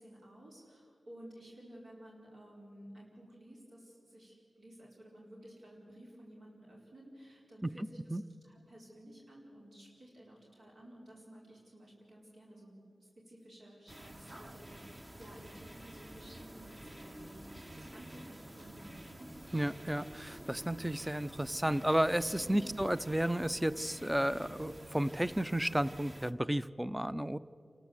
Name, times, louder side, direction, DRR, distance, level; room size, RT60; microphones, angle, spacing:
voice 1, 0.0-8.2 8.4-19.4 22.4-22.6, right 1 dB, 80° right, -4 dB, 4.4 m, -54 dB
voice 2, 7.8-8.2 19.5-27.4, right 1 dB, 5° right, 15 dB, 0.5 m, -32 dB
sound 1, 13.9-26.3, right 1 dB, 25° right, 1.1 m, -50 dB
28.5 x 13.5 x 7.8 m, 2.5 s
wide cardioid pair, 70°, 0 cm